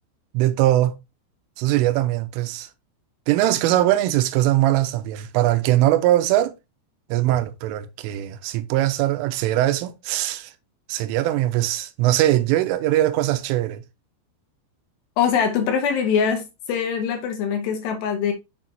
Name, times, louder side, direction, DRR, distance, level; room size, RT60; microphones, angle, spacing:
voice 1, 0.3-1.0 1.6-2.7 3.3-6.6 7.1-10.5 10.9-13.8, right 14 dB, 90° right, 3.2 m, -21 dB
voice 2, 15.2-18.3, left 7 dB, 70° left, 3.0 m, -23 dB
7.4 x 6.1 x 2.8 m
omnidirectional pair, 5.6 m